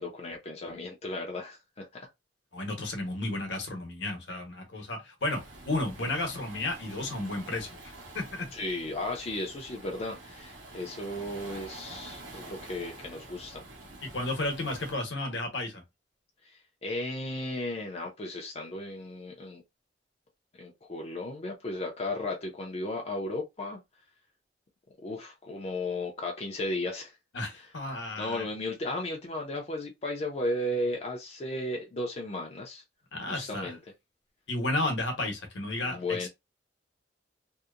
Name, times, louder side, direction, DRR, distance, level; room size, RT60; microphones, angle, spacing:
voice 1, 0.0-2.1 8.5-13.6 16.4-19.6 20.6-23.8 25.0-27.2 27.5-27.7 28.2-32.8 33.3-33.8 35.8-36.3, left 1 dB, 35° left, 0.5 m, -35 dB
voice 2, 2.5-8.5 14.1-15.8 27.3-28.5 33.1-33.7 34.5-36.3, left 2 dB, 70° left, 0.9 m, -33 dB
Waves surf, 5.2-15.0, right 2 dB, 80° right, 1.0 m, -47 dB
2.7 x 2.0 x 2.4 m
head